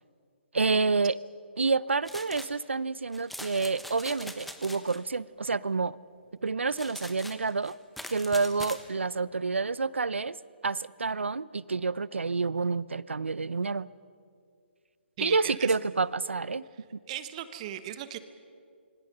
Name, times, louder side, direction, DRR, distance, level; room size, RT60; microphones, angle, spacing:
voice 1, 0.5-1.2 1.6-6.0 6.4-7.7 8.1-10.4 10.6-13.9 15.2-16.6, right 4 dB, 85° right, 21 dB, 0.6 m, -28 dB
sound 1, 2.1-2.6 3.1-5.0 6.7-8.8, left 1 dB, ahead, 1.1 m, -43 dB
voice 2, 15.2-15.7 16.7-18.2, right 12 dB, 35° right, 11 dB, 1.2 m, -38 dB
26.5 x 24.0 x 5.6 m, 2.3 s
hypercardioid pair, 145°, 6 cm